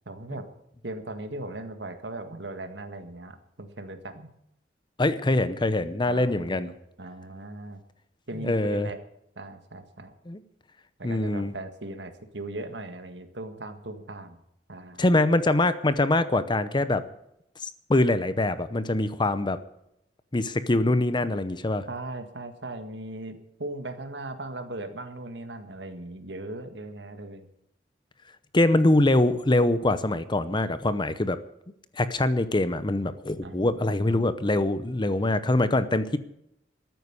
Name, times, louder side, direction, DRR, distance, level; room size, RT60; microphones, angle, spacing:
voice 1, 0.1-0.5 0.8-4.3 6.1-6.7 7.0-7.8 8.3-9.0 9.4-10.1 11.0-14.4 14.7-15.0 21.9-27.4 33.4-34.3, right 2 dB, 70° right, 8 dB, 1.8 m, -38 dB
voice 2, 5.0-6.7 8.4-8.9 10.3-10.4 11.0-11.5 15.0-17.0 17.6-19.6 20.3-21.8 28.5-31.4 32.0-36.2, left 2 dB, 25° left, 13 dB, 0.8 m, -24 dB
13.5 x 9.4 x 9.8 m, 0.78 s
head